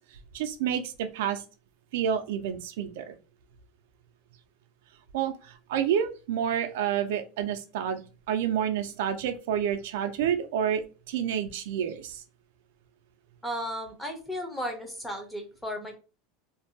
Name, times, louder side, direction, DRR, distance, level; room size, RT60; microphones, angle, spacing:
voice 1, 0.3-1.4 1.9-3.2 5.1-8.0 8.3-12.2, right 9 dB, 80° right, 8 dB, 0.4 m, -29 dB
voice 2, 13.4-16.0, equal, 5° left, 2 dB, 0.6 m, -35 dB
2.5 x 2.2 x 2.7 m, 0.33 s
supercardioid pair, 150°, 0 cm